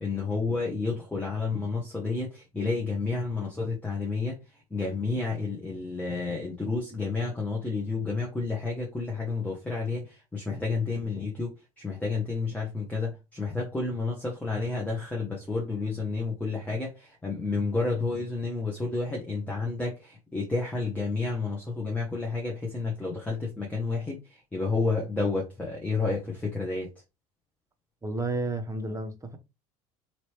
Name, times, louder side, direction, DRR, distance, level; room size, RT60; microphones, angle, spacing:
voice 1, 0.0-4.4 4.7-26.9, left 3 dB, 10° left, 1.0 m, -30 dB
voice 2, 28.0-29.4, right 2 dB, 15° right, 0.9 m, -31 dB
3.0 x 2.9 x 3.0 m
figure-of-eight pair, 65°, 19 cm